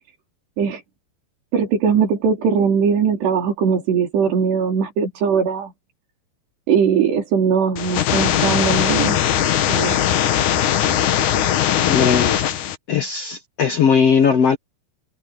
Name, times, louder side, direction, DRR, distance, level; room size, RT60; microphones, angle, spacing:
voice 1, 1.5-5.7 6.7-9.2 9.7-10.0, right 6 dB, 85° right, 6.4 m, -20 dB
sound 1, 7.8-12.8, left 10 dB, 60° left, 2.4 m, -19 dB
voice 2, 11.9-12.4 12.9-14.6, left 6 dB, 80° left, 1.4 m, -18 dB
omnidirectional pair, 4.7 m